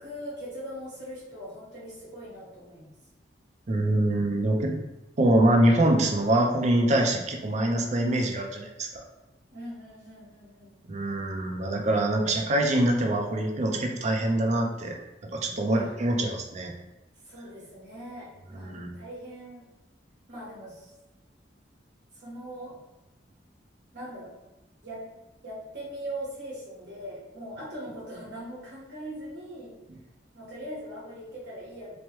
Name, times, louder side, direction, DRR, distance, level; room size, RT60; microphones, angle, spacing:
voice 1, 0.0-2.9 9.5-10.8 15.7-16.2 17.2-19.7 20.3-20.9 22.1-22.8 23.9-24.3 24.8-25.1 25.4-29.8 30.3-31.9, right 1 dB, 70° right, -8 dB, 1.3 m, -41 dB
voice 2, 3.7-4.8 5.2-9.0 10.9-14.9 15.2-16.7 18.6-18.9, right 1 dB, 40° right, 2 dB, 0.4 m, -24 dB
3.1 x 2.1 x 3.0 m, 1.0 s
head